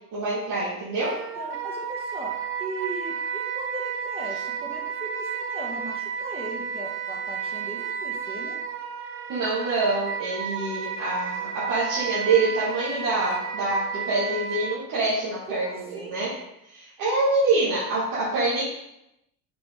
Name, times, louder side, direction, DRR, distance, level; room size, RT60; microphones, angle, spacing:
voice 1, 0.1-1.1 9.3-16.3 16.7-18.6, right 3 dB, 45° right, -9 dB, 2.4 m, -26 dB
Wind instrument woodwind instrument, 1.0-14.8, right 7 dB, 25° right, 0.9 m, -32 dB
voice 2, 1.4-2.3 2.6-8.6 15.5-16.2, right 2 dB, 10° right, -2 dB, 1.9 m, -38 dB
6.2 x 5.0 x 3.7 m, 0.85 s
figure-of-eight pair, 65°, 47 cm